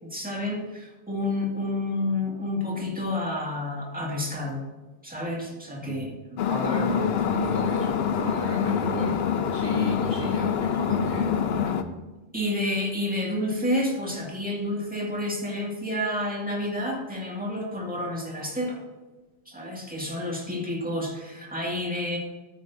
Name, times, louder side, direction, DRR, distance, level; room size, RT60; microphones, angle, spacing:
voice 1, 0.0-4.6 5.0-6.1 12.3-18.8 19.5-22.2, left 1 dB, 5° right, -2 dB, 2.1 m, -29 dB
sound 1, 6.4-11.8, left 8 dB, 65° left, 0.8 m, -26 dB
voice 2, 6.5-11.8, right 2 dB, 50° right, -1 dB, 1.2 m, -32 dB
13.5 x 8.9 x 2.7 m, 1.2 s
omnidirectional pair, 1.2 m